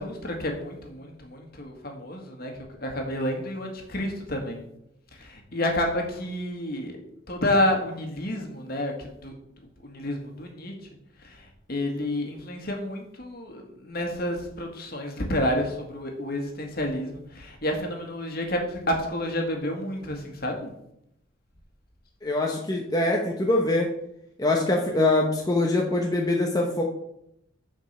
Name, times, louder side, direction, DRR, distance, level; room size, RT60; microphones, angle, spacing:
voice 1, 0.0-4.6 5.1-7.0 7.3-9.3 9.8-10.7 11.2-20.7, left 1 dB, 50° left, 2 dB, 1.8 m, -30 dB
voice 2, 22.2-23.9 24.4-26.8, left 2 dB, 20° left, 0 dB, 0.9 m, -23 dB
7.3 x 5.2 x 6.7 m, 0.78 s
head